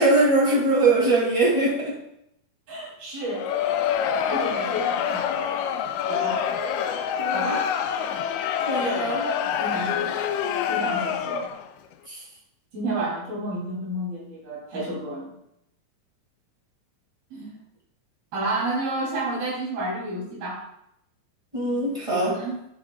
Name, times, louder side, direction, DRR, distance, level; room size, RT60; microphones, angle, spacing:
voice 1, 0.0-2.0 7.2-7.5 8.7-9.3 12.1-12.2 21.5-22.4, right 2 dB, 10° right, -5 dB, 1.6 m, -22 dB
voice 2, 2.7-3.5 4.3-5.3 6.1-6.4 7.3-7.7 8.7-10.2 10.7-11.5 12.7-15.4 17.3-17.6 18.3-20.6 22.3-22.6, right 1 dB, 85° right, -5 dB, 5.0 m, -31 dB
Crowd, 3.2-11.7, left 8 dB, 90° left, 1.7 m, -26 dB
11.5 x 7.1 x 2.3 m, 0.77 s
omnidirectional pair, 4.1 m